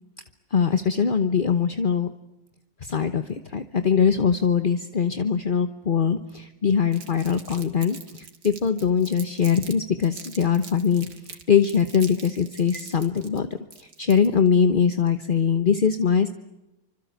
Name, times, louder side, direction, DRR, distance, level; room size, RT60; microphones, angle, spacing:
voice 1, 0.5-2.1 2.8-16.3, left 7 dB, 35° left, 10 dB, 1.0 m, -22 dB
Crumpling crinkling, 6.9-9.7 10.0-14.5, right 5 dB, 60° right, 3.0 m, -43 dB
26.5 x 25.5 x 8.3 m, 0.93 s
omnidirectional pair, 2.0 m